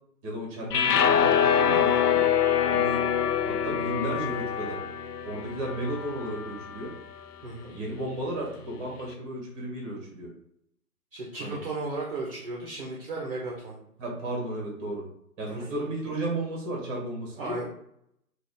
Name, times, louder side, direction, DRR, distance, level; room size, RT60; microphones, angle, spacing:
voice 1, 0.2-2.3 2.7-3.0 3.4-4.8 5.2-6.9 7.6-10.3 11.4-11.6 14.0-15.0 15.4-17.6, right 1 dB, 20° right, -2 dB, 1.1 m, -34 dB
sound 1, 0.7-7.0, left 8 dB, 85° left, 0.6 m, -25 dB
voice 2, 7.4-7.8 11.1-13.8 15.4-15.8 17.3-17.6, right 2 dB, 40° right, -3 dB, 0.7 m, -35 dB
3.9 x 2.5 x 3.3 m, 0.73 s
hypercardioid pair, 150°, 46 cm